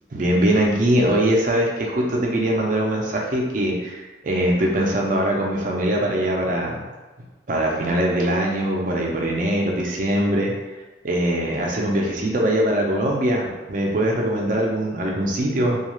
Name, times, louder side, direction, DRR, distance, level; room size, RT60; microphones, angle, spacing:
voice 1, 0.1-6.8 7.5-10.5 11.0-15.8, right 1 dB, 45° right, -1 dB, 0.5 m, -22 dB
2.3 x 2.3 x 3.0 m, 1.2 s
head